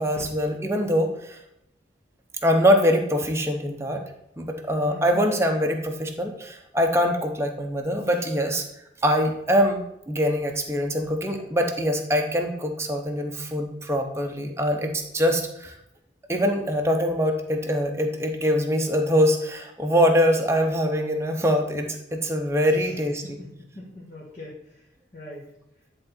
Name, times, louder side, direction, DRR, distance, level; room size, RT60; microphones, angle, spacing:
voice 1, 0.0-1.4 2.4-4.0 4.4-8.6 9.0-15.7 16.3-23.4, equal, 15° right, 3 dB, 0.8 m, -23 dB
voice 2, 4.8-5.2 22.7-23.0 23.2-24.8 25.1-25.5, left 1 dB, 40° left, -7 dB, 1.7 m, -42 dB
10.5 x 3.8 x 4.3 m, 0.81 s
head